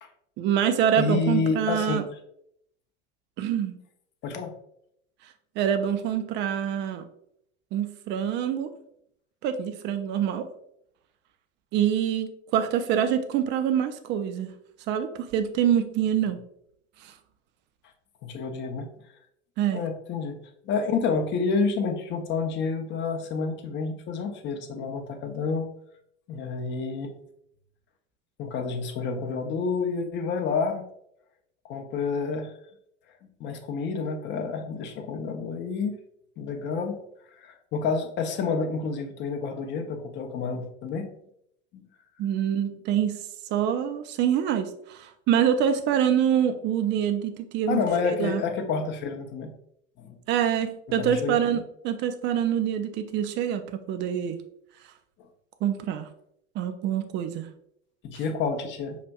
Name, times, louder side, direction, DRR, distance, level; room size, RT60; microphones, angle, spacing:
voice 1, 0.4-2.0 3.4-3.8 5.6-7.0 7.7-8.7 9.4-10.5 11.7-14.5 14.9-16.4 17.0-17.1 19.6-19.8 42.2-43.2 43.5-48.4 50.3-54.4 55.6-56.1 56.6-57.5, right 9 dB, 30° right, 8 dB, 0.4 m, -25 dB
voice 2, 1.0-2.1 4.2-4.5 18.2-18.9 19.7-20.4 20.6-25.7 26.3-27.1 28.4-30.9 31.6-32.5 33.4-36.0 36.4-37.0 37.4-41.1 41.7-41.8 47.7-49.5 50.0-50.2 50.9-51.4 58.0-59.0, left 5 dB, 30° left, 5 dB, 0.6 m, -29 dB
5.7 x 2.5 x 2.2 m, 0.73 s
figure-of-eight pair, 80°, 37 cm